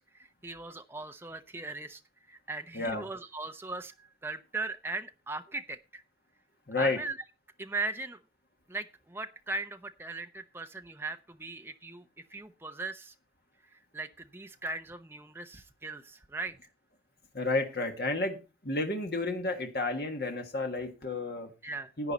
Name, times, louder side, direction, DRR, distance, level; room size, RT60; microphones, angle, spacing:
voice 1, 0.0-2.0 2.3-6.0 6.8-7.2 7.6-8.2 8.7-13.1 13.7-16.5 21.6-21.9, right 3 dB, 15° right, 7 dB, 0.7 m, -39 dB
voice 2, 6.7-7.0 17.3-18.4 18.6-21.5 22.0-22.1, left 2 dB, 65° left, 4 dB, 1.6 m, -31 dB
11.0 x 8.9 x 4.1 m, 0.30 s
head